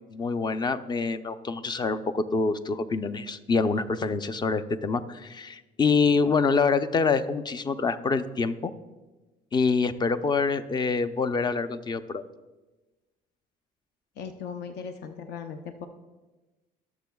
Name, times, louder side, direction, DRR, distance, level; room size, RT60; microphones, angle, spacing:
voice 1, 0.1-8.7 9.5-12.2, left 4 dB, 25° left, 12 dB, 0.5 m, -26 dB
voice 2, 14.2-15.9, left 6 dB, 80° left, 6 dB, 0.7 m, -38 dB
21.0 x 7.1 x 2.3 m, 1.2 s
cardioid pair, 110°, 17 cm